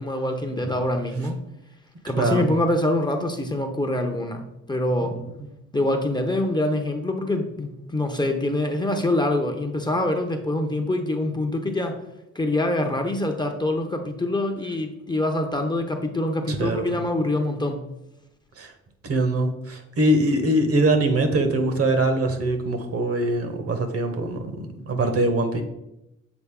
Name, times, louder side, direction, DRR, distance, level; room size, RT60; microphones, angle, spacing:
voice 1, 0.0-1.4 2.0-5.2 5.7-12.0 12.3-17.8, left 1 dB, 15° left, 4 dB, 0.7 m, -25 dB
voice 2, 2.2-2.5 16.5-17.0 18.6-18.7 19.0-25.6, right 1 dB, 50° right, 7 dB, 1.0 m, -23 dB
7.1 x 3.8 x 3.7 m, 0.89 s
cardioid pair, 90°, 30 cm